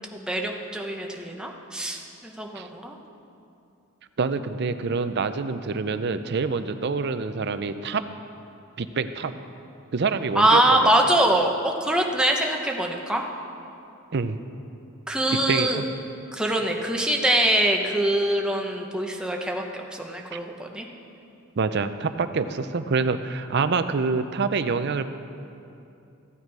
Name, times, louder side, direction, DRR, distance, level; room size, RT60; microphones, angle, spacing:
voice 1, 0.1-3.0 10.4-13.2 15.1-15.8 16.3-20.9, right 1 dB, 5° right, 1 dB, 0.9 m, -23 dB
voice 2, 4.2-8.0 8.8-9.3 9.9-10.9 14.1-14.4 15.3-15.9 20.3-20.4 21.6-25.1, right 4 dB, 50° right, 11 dB, 0.5 m, -26 dB
15.5 x 9.1 x 4.7 m, 2.7 s
head